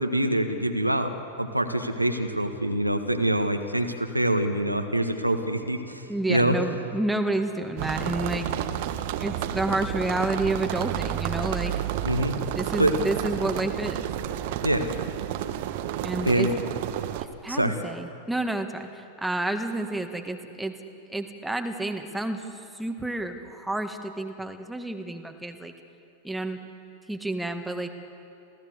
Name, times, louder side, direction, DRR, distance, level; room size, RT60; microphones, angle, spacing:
voice 1, 0.0-6.0 6.3-6.6 12.0-12.4 12.8-12.9 14.6-14.9 16.2-16.5 17.5-17.8, right 1 dB, 90° right, 7 dB, 1.4 m, -25 dB
voice 2, 6.0-8.5 9.2-11.7 12.5-14.1 16.0-16.5 17.2-20.8 21.1-22.4 22.7-25.7 26.2-26.6 27.1-27.9, right 2 dB, 5° right, 6 dB, 1.7 m, -30 dB
sound 1, 7.8-17.2, right 11 dB, 50° right, 1.1 m, -31 dB
28.0 x 16.0 x 8.0 m, 2.7 s
figure-of-eight pair, 90°, 0 cm